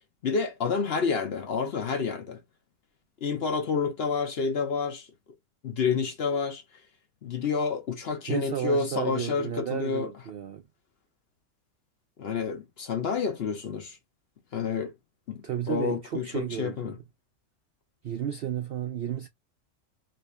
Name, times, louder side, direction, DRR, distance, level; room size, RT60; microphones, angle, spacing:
voice 1, 0.2-2.4 3.2-5.1 5.6-6.6 7.2-10.1 12.2-14.0 14.5-14.9 15.3-15.4 15.7-17.0, left 5 dB, 50° left, 0.8 m, -29 dB
voice 2, 8.3-10.6 15.4-17.0 18.0-19.3, right 10 dB, 80° right, 0.5 m, -33 dB
3.2 x 2.8 x 3.2 m
omnidirectional pair, 1.6 m